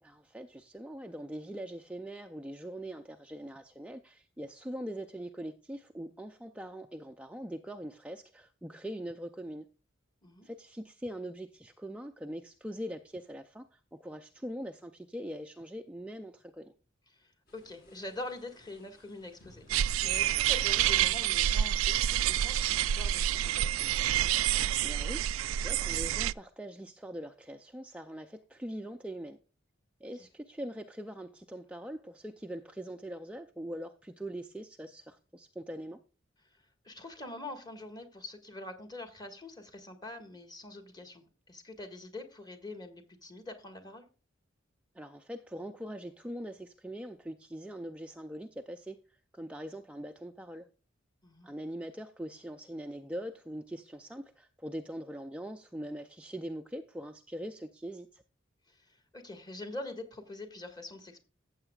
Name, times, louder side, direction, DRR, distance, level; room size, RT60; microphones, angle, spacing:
voice 1, 0.0-9.7 10.4-16.7 24.8-29.4 30.0-36.0 44.9-50.7 51.4-58.2, equal, 5° right, 0.4 m, -42 dB
voice 2, 17.1-24.0 36.8-44.0 51.2-51.5 58.7-61.2, left 2 dB, 20° left, 1.7 m, -44 dB
sound 1, 17.5-23.1, left 1 dB, 50° left, 4.7 m, -59 dB
sound 2, 19.7-26.3, right 11 dB, 85° right, 0.3 m, -28 dB
14.5 x 8.0 x 2.3 m
head